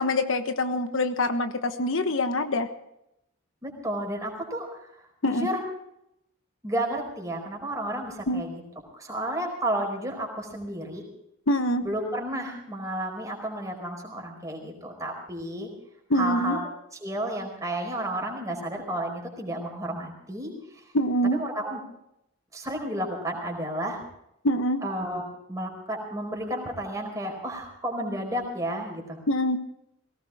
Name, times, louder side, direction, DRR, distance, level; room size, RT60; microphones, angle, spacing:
voice 1, 0.0-2.7 5.2-5.5 8.3-8.4 11.5-11.9 16.1-16.6 20.9-21.4 24.4-24.8 29.3-29.6, left 1 dB, 65° left, 8 dB, 1.2 m, -25 dB
voice 2, 3.6-4.9 5.2-5.6 6.6-8.6 8.9-11.1 11.8-15.7 16.1-16.6 17.0-20.8 21.2-21.8 22.5-24.0 24.8-29.2, right 1 dB, 15° right, 1 dB, 4.5 m, -32 dB
19.5 x 18.0 x 3.6 m, 0.80 s
head